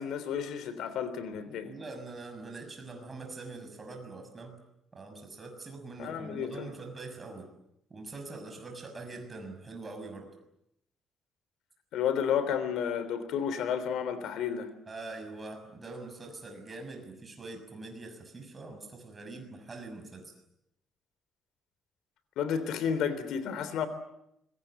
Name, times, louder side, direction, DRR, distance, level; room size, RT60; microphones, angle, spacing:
voice 1, 0.0-1.7 6.0-6.7 11.9-14.7 22.4-23.9, left 8 dB, 75° left, 3.5 m, -31 dB
voice 2, 1.6-4.6 4.9-7.5 7.9-10.3 14.9-20.3, right 3 dB, 20° right, 6.4 m, -43 dB
26.0 x 23.5 x 9.0 m
cardioid pair, 160°, 0 cm